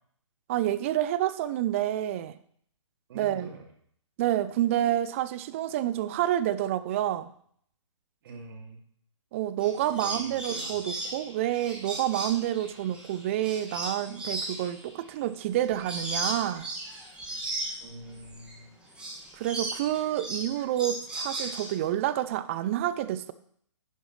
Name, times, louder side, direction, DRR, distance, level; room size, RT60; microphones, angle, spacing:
voice 1, 0.5-2.3 3.1-3.5 4.2-7.3 9.3-16.7 19.3-23.3, right 12 dB, 25° right, 15 dB, 0.4 m, -28 dB
voice 2, 3.1-3.7 8.2-8.8 10.0-10.8 17.8-18.8, right 3 dB, 45° right, 2 dB, 2.5 m, -45 dB
sound 1, 9.6-18.5 18.9-21.9, right 2 dB, 5° right, 1.8 m, -36 dB
10.5 x 9.9 x 3.2 m, 0.63 s
hypercardioid pair, 145°, 16 cm